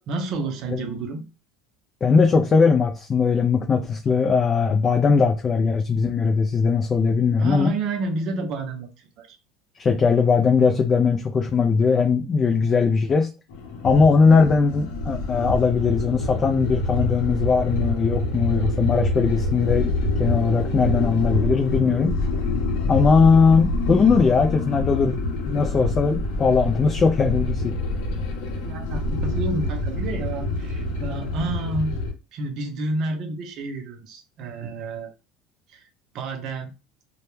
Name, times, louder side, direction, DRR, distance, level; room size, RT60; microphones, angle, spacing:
voice 1, 0.1-1.3 7.4-9.4 11.3-11.4 28.5-32.0 32.3-35.1 35.7-35.9 36.1-36.7, right 2 dB, 55° right, 0.5 m, -30 dB
voice 2, 2.0-7.7 9.8-13.3 13.8-19.9 20.2-22.2 22.9-25.1 25.5-27.8, left 5 dB, 30° left, 0.3 m, -19 dB
sound 1, 13.5-32.1, left 2 dB, 80° left, 0.7 m, -26 dB
2.1 x 2.1 x 3.0 m
supercardioid pair, 120°, 0 cm